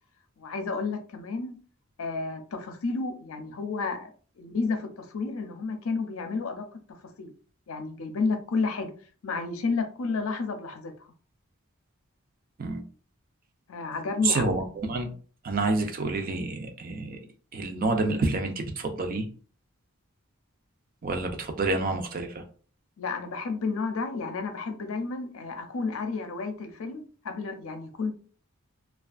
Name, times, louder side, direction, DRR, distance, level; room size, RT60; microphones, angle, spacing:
voice 1, 0.4-1.6 2.0-6.8 7.2-7.3 7.7-8.9 9.2-10.9 13.7-14.6 23.0-28.1, left 4 dB, 75° left, 0.5 m, -31 dB
voice 2, 14.2-15.1 15.4-17.2 17.5-19.3 21.0-22.4, right 3 dB, 45° right, 0.4 m, -28 dB
2.5 x 2.3 x 2.3 m
head